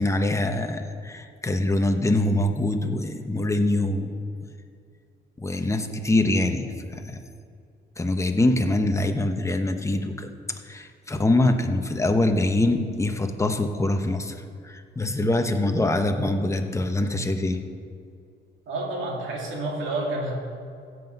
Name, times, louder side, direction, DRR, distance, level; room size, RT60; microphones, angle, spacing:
voice 1, 0.0-4.1 5.4-7.2 8.0-17.6, left 2 dB, 15° left, 5 dB, 1.1 m, -24 dB
voice 2, 18.7-20.3, right 2 dB, 80° right, -2 dB, 2.7 m, -29 dB
15.5 x 7.9 x 5.4 m, 2.4 s
cardioid pair, 90°, 20 cm